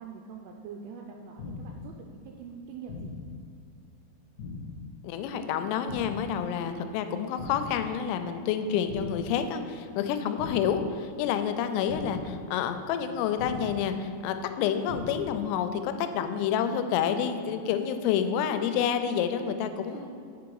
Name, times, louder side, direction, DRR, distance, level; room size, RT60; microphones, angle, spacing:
voice 1, 0.0-3.1 17.4-18.3 19.8-20.1, right 6 dB, 85° right, 1 dB, 2.9 m, -45 dB
sound 1, 1.4-1.9 2.9-3.4 4.4-4.9 5.9-6.4 7.4-7.9 8.9-9.4 10.4-10.9 11.9-12.4 13.4-13.9 14.9-15.4, left 4 dB, 65° left, 2.0 m, -39 dB
voice 2, 5.0-20.1, left 8 dB, 85° left, 8 dB, 3.2 m, -29 dB
8.2 x 6.0 x 4.7 m, 2.4 s
omnidirectional pair, 6.0 m